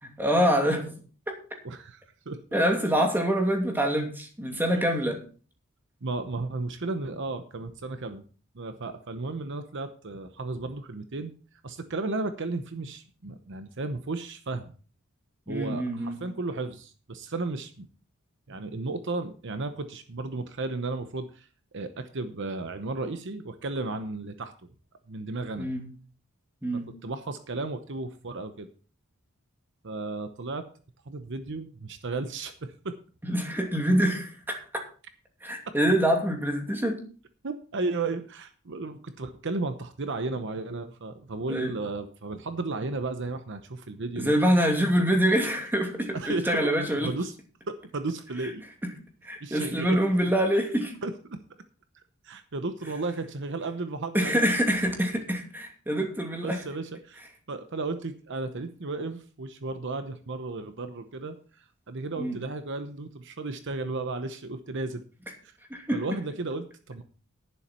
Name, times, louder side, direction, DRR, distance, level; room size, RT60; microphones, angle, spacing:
voice 1, 0.0-1.0 2.5-5.2 15.5-16.2 25.6-25.8 26.6-26.9 33.3-34.8 35.4-37.0 41.5-41.7 44.2-47.1 48.8-48.9 49.2-50.9 54.1-56.6 62.2-62.4 65.7-66.0, equal, 10° right, 2 dB, 2.7 m, -25 dB
voice 2, 1.6-2.0 2.3-2.4 4.7-4.8 6.0-8.2 8.5-11.3 11.6-14.7 15.5-17.9 18.5-21.5 21.7-24.5 25.1-25.7 26.7-28.7 29.8-30.7 31.1-33.0 35.7-35.8 37.4-44.4 46.1-47.3 47.7-48.6 49.4-50.0 51.0-51.4 52.2-54.3 56.4-57.2 57.5-65.0 65.4-65.5 65.9-67.0, right 3 dB, 60° right, 9 dB, 0.9 m, -34 dB
11.0 x 10.5 x 4.4 m, 0.39 s
head